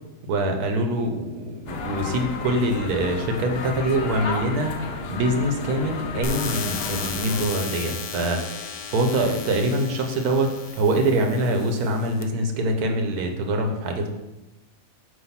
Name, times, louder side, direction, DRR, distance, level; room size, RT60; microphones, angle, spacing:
voice 1, 0.3-14.1, right 1 dB, 85° right, 4 dB, 1.4 m, -24 dB
sound 1, 1.7-7.4, left 4 dB, 60° left, 0.7 m, -32 dB
sound 2, 6.2-12.2, left 6 dB, 85° left, 1.1 m, -35 dB
7.9 x 2.6 x 5.7 m, 1.0 s
omnidirectional pair, 1.6 m